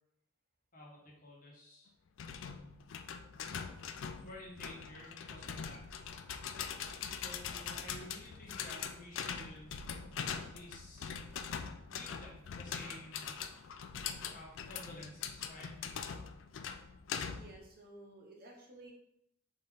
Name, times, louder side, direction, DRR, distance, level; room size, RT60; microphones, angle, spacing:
voice 1, 0.7-1.9 4.2-5.8 7.1-9.8 10.3-11.1 11.8-13.3 14.3-15.7, left 1 dB, 45° left, -3 dB, 1.3 m, -52 dB
sound 1, 2.2-17.6, left 7 dB, 75° left, 0.4 m, -42 dB
voice 2, 17.4-18.9, right 2 dB, 50° right, 0 dB, 1.0 m, -54 dB
4.2 x 3.7 x 3.4 m, 0.76 s
head